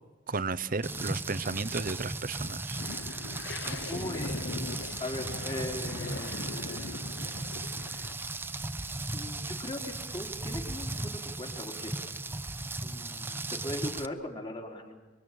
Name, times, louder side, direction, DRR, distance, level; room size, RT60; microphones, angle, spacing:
voice 1, 0.3-2.8, right 4 dB, 50° right, 16 dB, 0.9 m, -33 dB
Rain, 0.8-14.1, right 2 dB, 10° right, 0.9 m, -37 dB
sound 1, 2.8-8.1, left 3 dB, 65° left, 0.8 m, -40 dB
voice 2, 3.9-7.2 9.1-12.0 12.8-15.0, left 1 dB, 25° left, 2 dB, 3.9 m, -40 dB
26.0 x 23.5 x 9.1 m, 1.2 s
head